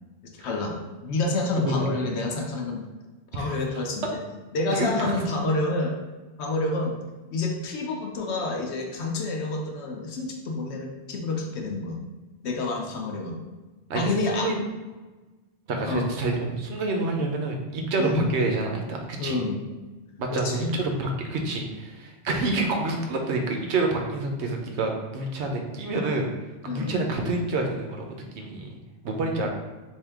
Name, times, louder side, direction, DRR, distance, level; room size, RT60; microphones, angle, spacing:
voice 1, 0.4-0.7 1.0-2.8 3.3-4.2 4.5-5.9 6.4-7.0 7.3-12.0 12.4-13.4 13.9-14.5 15.9-16.1 18.0-18.3 19.2-19.6 20.3-20.7 26.7-27.0 29.4-29.5, left 2 dB, 85° left, 2 dB, 1.0 m, -28 dB
voice 2, 1.6-2.0 3.4-3.5 4.7-5.1 13.9-14.1 14.4-14.6 15.7-19.4 20.2-26.3 26.6-28.7 29.0-29.5, right 2 dB, 85° right, 2 dB, 1.0 m, -28 dB
3.6 x 2.7 x 3.4 m, 1.2 s
omnidirectional pair, 1.1 m